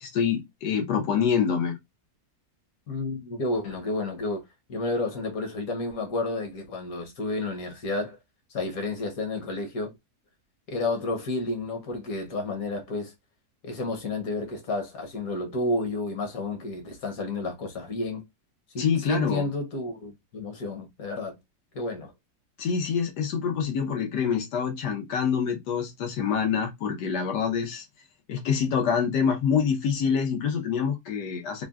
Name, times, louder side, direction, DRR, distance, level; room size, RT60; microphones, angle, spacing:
voice 1, 0.0-1.8 18.8-19.5 22.6-27.8 28.3-31.6, left 7 dB, 85° left, 1.5 m, -26 dB
voice 2, 2.9-4.4 4.7-8.2 8.5-9.9 10.7-13.1 13.6-18.2 18.7-21.4 21.7-22.1, left 2 dB, 65° left, 1.3 m, -31 dB
3.7 x 2.2 x 2.2 m
omnidirectional pair, 1.7 m